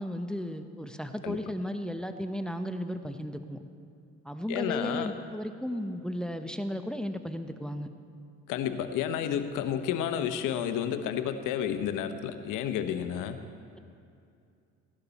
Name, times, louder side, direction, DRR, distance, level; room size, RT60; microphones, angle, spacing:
voice 1, 0.0-3.6 4.2-7.9, equal, ahead, 8 dB, 0.8 m, -35 dB
voice 2, 4.5-5.1 8.5-13.4, left 9 dB, 70° left, 9 dB, 1.0 m, -31 dB
16.0 x 11.5 x 4.1 m, 2.5 s
supercardioid pair, 65°, 33 cm